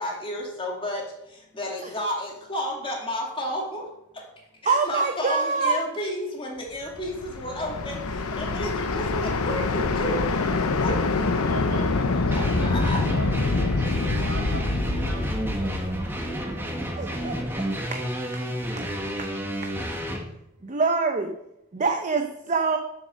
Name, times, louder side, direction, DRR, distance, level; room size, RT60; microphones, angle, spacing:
voice 1, 0.0-3.9 4.1-4.2 4.6-10.4 10.8-11.3 12.3-13.0, equal, 25° left, -1 dB, 2.4 m, -32 dB
voice 2, 4.7-5.8 17.0-17.4 19.2-19.3 19.6-19.7 20.6-21.3 21.7-22.8, right 4 dB, 35° right, 5 dB, 0.7 m, -24 dB
sound 1, 6.9-16.9, left 3 dB, 80° left, 0.8 m, -26 dB
voice 3, 11.3-12.4 12.7-18.0, right 3 dB, 70° right, -1 dB, 2.7 m, -43 dB
sound 2, 12.3-20.2, equal, 10° right, 1.3 m, -31 dB
7.3 x 7.2 x 6.4 m, 0.84 s
head